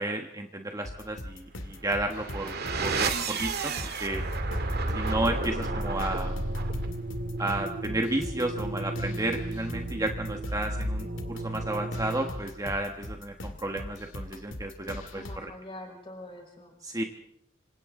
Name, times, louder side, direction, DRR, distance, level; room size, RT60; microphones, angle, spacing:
voice 1, 0.0-2.5 2.8-4.3 4.9-6.4 7.4-15.5 16.8-17.0, right 1 dB, 20° right, 4 dB, 1.3 m, -32 dB
sound 1, 0.8-15.4, left 1 dB, 70° left, 2.2 m, -41 dB
sound 2, 1.8-12.6, right 2 dB, 55° right, 2.1 m, -32 dB
voice 2, 15.1-16.7, left 1 dB, 25° left, 1 dB, 5.6 m, -44 dB
27.0 x 26.0 x 3.8 m, 0.70 s
head